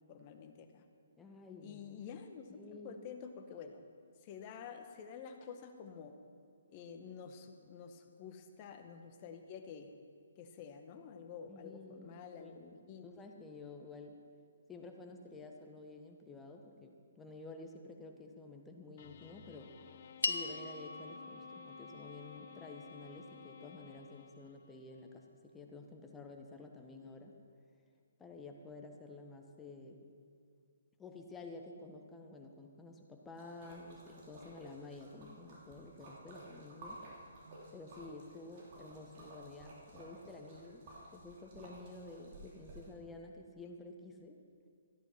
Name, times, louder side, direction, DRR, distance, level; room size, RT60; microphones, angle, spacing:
voice 1, 0.1-0.8 1.6-3.9 4.2-6.1 6.7-9.9 10.4-13.1, left 6 dB, 35° left, 6 dB, 1.2 m, -49 dB
voice 2, 1.2-1.8 2.5-3.0 11.5-14.2 14.7-19.7 20.3-27.3 28.2-30.0 31.0-37.1 37.7-44.4, left 3 dB, 10° left, 2 dB, 1.2 m, -51 dB
sound 1, 19.0-24.8, left 8 dB, 50° left, 0.7 m, -55 dB
sound 2, 20.2-24.7, left 3 dB, 85° left, 0.8 m, -43 dB
Splash splatter, 33.4-42.9, right 1 dB, 45° right, 3.6 m, -54 dB
14.0 x 10.5 x 5.7 m, 2.2 s
figure-of-eight pair, 140°, 0 cm